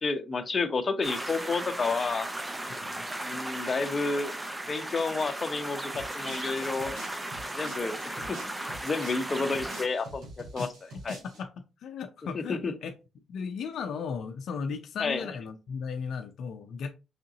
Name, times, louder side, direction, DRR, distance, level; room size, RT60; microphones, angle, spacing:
voice 1, 0.0-2.3 3.2-4.3 4.7-7.0 7.5-10.7 11.0-11.2 12.3-12.7 15.0-15.4, left 4 dB, 35° left, 0.9 m, -30 dB
sound 1, 1.0-9.9, right 1 dB, 15° right, 0.7 m, -36 dB
sound 2, 5.9-11.4, right 2 dB, 85° right, 2.9 m, -46 dB
voice 2, 11.8-16.9, left 6 dB, 70° left, 0.6 m, -36 dB
5.0 x 3.7 x 2.8 m
cardioid pair, 90°, 0 cm